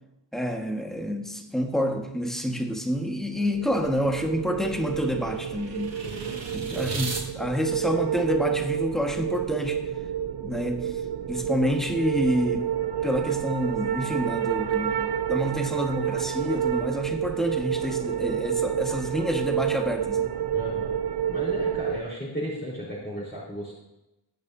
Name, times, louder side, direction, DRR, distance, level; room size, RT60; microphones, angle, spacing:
voice 1, 0.3-6.0 6.5-9.9 10.4-11.0 11.3-12.7 13.0-20.3, equal, ahead, 1.5 m, -28 dB
sound 1, 3.4-22.0, right 9 dB, 65° right, 0.6 m, -29 dB
sound 2, 3.6-7.2, right 3 dB, 80° right, 2.0 m, -38 dB
voice 2, 6.0-7.1 20.5-20.9 21.3-23.7, right 1 dB, 25° left, 4.1 m, -35 dB
21.5 x 9.0 x 2.8 m
wide cardioid pair, 85°, 43 cm